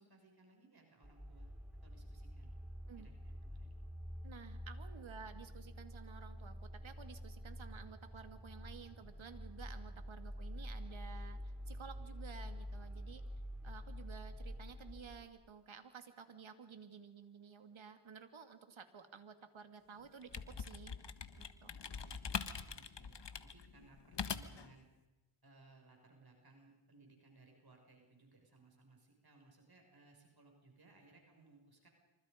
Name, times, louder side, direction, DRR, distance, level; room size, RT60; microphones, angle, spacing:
voice 1, 0.0-1.5 1.8-2.5 3.0-3.7 9.9-10.2 21.7-22.2 22.5-23.1 23.4-24.9 25.4-31.9, right 3 dB, 50° right, 2 dB, 6.5 m, -64 dB
sound 1, 1.0-15.3, equal, ahead, 4.8 m, -48 dB
voice 2, 4.2-13.2 13.6-21.0 21.4-21.7, right 6 dB, 70° right, 8 dB, 2.7 m, -53 dB
sound 2, 20.0-24.7, left 6 dB, 55° left, 1.6 m, -43 dB
27.0 x 25.5 x 5.3 m, 1.1 s
cardioid pair, 50°, 49 cm